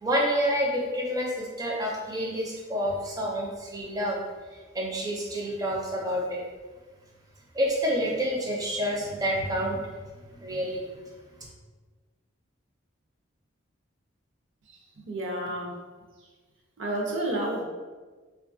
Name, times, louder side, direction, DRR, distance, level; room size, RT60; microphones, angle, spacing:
voice 1, 0.0-4.2 4.5-6.4 7.5-9.9 10.3-10.8, equal, 20° right, -2 dB, 0.4 m, -28 dB
voice 2, 14.7-15.8 16.8-17.6, right 1 dB, 65° right, 0 dB, 0.6 m, -31 dB
3.2 x 2.3 x 2.6 m, 1.4 s
head